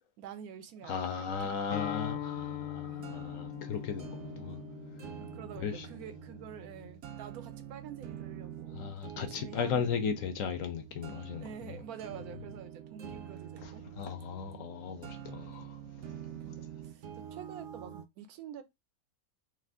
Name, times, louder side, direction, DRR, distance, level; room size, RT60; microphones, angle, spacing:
voice 1, 0.2-1.6 2.8-3.1 5.2-8.8 9.2-10.0 11.3-13.9 16.2-18.6, right 8 dB, 85° right, 1.1 m, -47 dB
voice 2, 0.8-4.6 5.6-5.9 8.7-11.7 13.6-16.1, left 6 dB, 70° left, 1.0 m, -36 dB
Acoustic guitar, 1.7-6.9, left 11 dB, 85° left, 0.5 m, -42 dB
sound 1, 2.0-18.1, right 9 dB, 65° right, 0.8 m, -47 dB
2.7 x 2.4 x 3.4 m
omnidirectional pair, 1.6 m